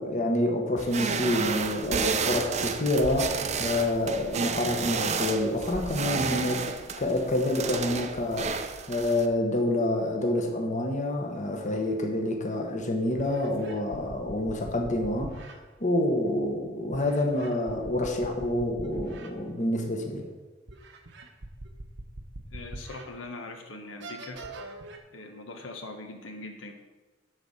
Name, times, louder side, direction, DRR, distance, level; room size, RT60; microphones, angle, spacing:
voice 1, 0.0-20.3, left 1 dB, 40° left, 2 dB, 1.3 m, -28 dB
sound 1, 0.8-9.3, right 5 dB, 35° right, 0.6 m, -31 dB
sound 2, 12.5-12.6 13.2-15.6 16.9-19.3 19.8-19.9 20.7-23.1 23.5-23.6 24.0-25.0, right 2 dB, 65° right, 1.0 m, -42 dB
voice 2, 22.5-24.4 25.1-26.7, left 2 dB, 80° left, 3 dB, 1.1 m, -41 dB
11.0 x 4.2 x 6.6 m, 1.2 s
head